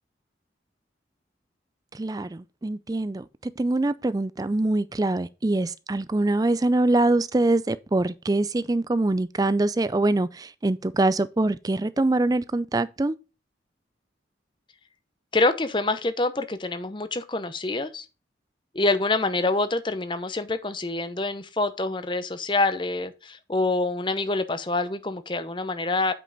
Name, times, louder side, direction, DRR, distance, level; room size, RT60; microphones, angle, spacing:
voice 1, 1.9-13.1, right 2 dB, 20° right, 0.4 m, -24 dB
voice 2, 15.3-18.1 18.7-26.1, left 2 dB, 25° left, 0.8 m, -26 dB
8.3 x 5.5 x 3.9 m
head